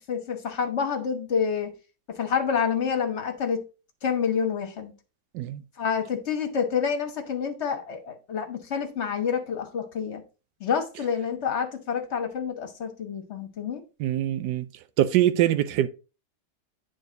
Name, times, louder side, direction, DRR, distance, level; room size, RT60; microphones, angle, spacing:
voice 1, 0.1-1.7 2.1-3.6 4.0-4.9 5.8-10.2 10.6-13.8, left 6 dB, 45° left, 1.3 m, -28 dB
voice 2, 14.0-14.7 15.0-15.9, right 13 dB, 85° right, 1.2 m, -23 dB
8.9 x 4.0 x 3.8 m
omnidirectional pair, 1.8 m